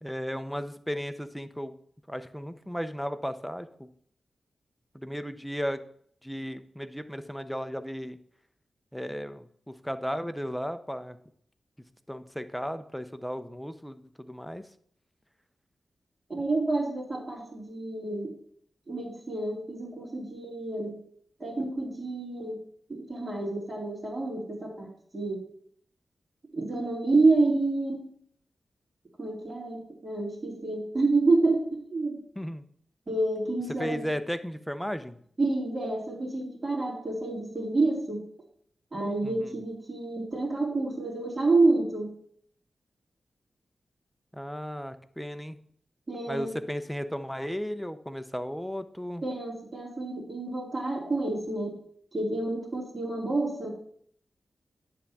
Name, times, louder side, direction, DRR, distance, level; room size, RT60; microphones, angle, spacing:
voice 1, 0.0-1.8 2.1-3.9 4.9-5.8 6.2-8.2 8.9-11.2 12.1-14.7 32.4-32.7 33.8-35.2 39.2-39.5 44.3-45.6 46.3-49.2, equal, ahead, 10 dB, 0.5 m, -35 dB
voice 2, 16.3-18.3 18.9-21.0 21.4-22.6 22.9-25.5 26.5-28.0 29.2-32.2 33.1-34.1 35.4-38.2 38.9-42.1 46.1-46.5 49.2-51.7 52.1-53.7, right 2 dB, 30° right, -2 dB, 2.4 m, -28 dB
10.0 x 3.5 x 6.9 m, 0.62 s
wide cardioid pair, 140°, 0 cm